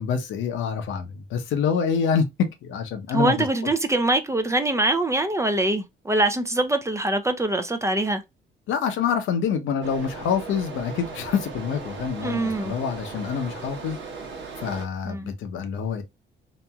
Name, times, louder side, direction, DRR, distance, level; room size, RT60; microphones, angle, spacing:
voice 1, 0.0-3.5 8.7-14.0 14.6-16.0, left 6 dB, 80° left, 0.8 m, -26 dB
voice 2, 3.1-8.2 12.2-12.7 15.1-15.3, right 2 dB, 15° right, 0.5 m, -23 dB
sound 1, 9.8-14.8, right 4 dB, 75° right, 1.1 m, -37 dB
3.0 x 2.6 x 2.2 m
cardioid pair, 90°, 20 cm